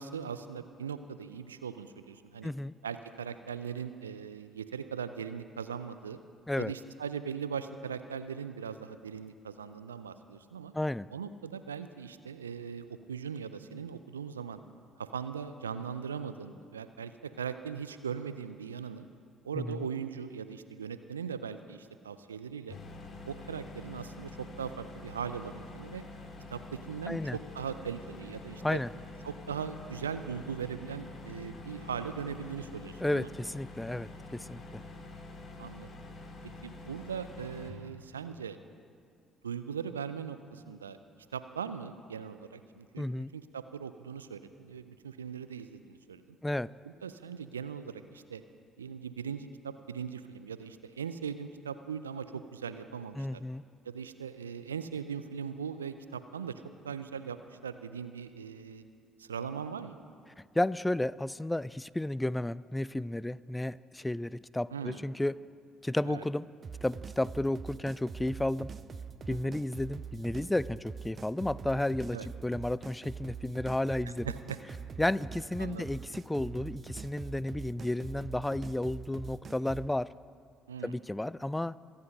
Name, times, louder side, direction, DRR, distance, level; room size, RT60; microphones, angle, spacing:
voice 1, 0.0-2.5 2.8-6.2 6.6-10.7 11.1-14.6 15.0-19.1 19.4-22.8 23.3-24.3 24.6-26.0 26.5-28.8 29.2-33.3 35.6-35.9 36.6-38.6 39.4-41.0 41.3-46.4 46.8-48.4 48.8-53.4 53.8-58.8 59.2-60.0 64.7-65.0 66.1-66.2 69.3-69.5 72.1-72.3 74.1-74.6 75.6-75.8 80.7-80.9, right 7 dB, 85° right, 11 dB, 0.4 m, -39 dB
voice 2, 2.4-2.7 6.5-6.7 10.7-11.1 19.5-19.9 27.1-27.4 28.6-28.9 33.0-34.6 43.0-43.3 46.4-46.7 53.2-53.6 60.6-65.4 65.8-66.5 66.8-68.7 69.3-72.2 72.4-74.3 75.0-80.1 80.8-81.7, left 1 dB, 10° left, 20 dB, 0.3 m, -32 dB
sound 1, 22.7-37.7, left 2 dB, 45° left, 2.6 m, -47 dB
sound 2, 66.6-79.9, right 6 dB, 40° right, 0.6 m, -44 dB
23.5 x 8.0 x 5.3 m, 2.3 s
figure-of-eight pair, 50°, 0 cm